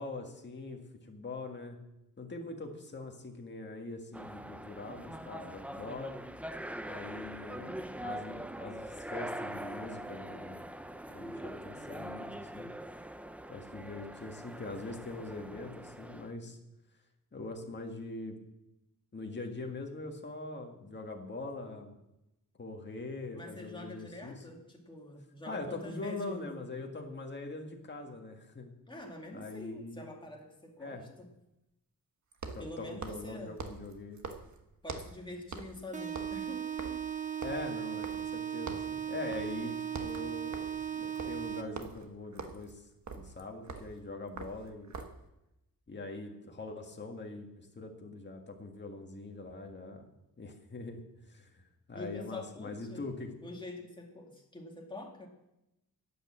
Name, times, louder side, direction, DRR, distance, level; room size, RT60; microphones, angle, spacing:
voice 1, 0.0-1.8 2.2-6.2 6.8-7.7 8.0-10.6 11.1-12.7 13.5-16.6 17.3-18.4 19.1-21.9 22.6-24.4 25.5-28.7 29.3-30.0 30.8-31.0 32.5-34.2 37.4-42.8 43.1-44.9 45.9-50.1 50.4-53.3, left 2 dB, 30° left, 2 dB, 1.9 m, -43 dB
sound 1, 4.1-16.3, right 1 dB, 5° right, 0.4 m, -43 dB
voice 2, 6.7-7.0 23.3-26.6 28.9-31.3 32.6-33.5 34.8-37.0 51.9-53.1 53.4-55.3, left 1 dB, 15° left, 0 dB, 2.4 m, -45 dB
sound 2, 29.0-29.1 32.3-35.2 35.5-35.8 36.1-38.4 38.7-39.0 39.3-39.6 39.9-45.3, right 4 dB, 55° right, 1.3 m, -45 dB
sound 3, 35.9-41.9, right 9 dB, 20° right, 1.0 m, -37 dB
11.5 x 8.9 x 7.5 m, 0.90 s
wide cardioid pair, 140°, 35 cm